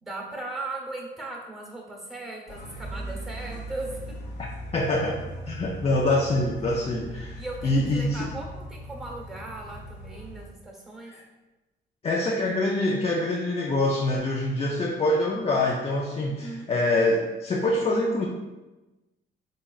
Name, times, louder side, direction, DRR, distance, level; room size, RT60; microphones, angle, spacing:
voice 1, 0.0-4.0 7.4-11.1 16.3-16.7, right 2 dB, ahead, -1 dB, 1.0 m, -38 dB
sound 1, 2.5-10.4, right 1 dB, 60° left, 1.1 m, -39 dB
voice 2, 4.7-5.2 5.5-8.3 11.1-11.2 12.0-18.3, left 2 dB, 30° left, -2 dB, 0.4 m, -25 dB
3.5 x 3.1 x 2.4 m, 1.1 s
cardioid pair, 90°, 20 cm